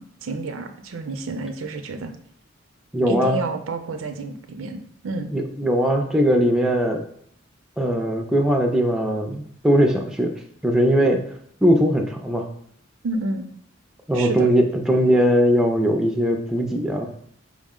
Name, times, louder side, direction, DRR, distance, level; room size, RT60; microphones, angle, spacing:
voice 1, 0.0-2.1 3.1-5.3 13.0-13.5 14.1-14.5, right 3 dB, 85° right, 7 dB, 0.5 m, -29 dB
voice 2, 2.9-3.4 5.3-7.0 7.8-10.3 10.6-11.2 11.6-12.5 14.1-17.1, equal, 5° right, 2 dB, 0.3 m, -20 dB
4.8 x 2.0 x 3.6 m, 0.66 s
head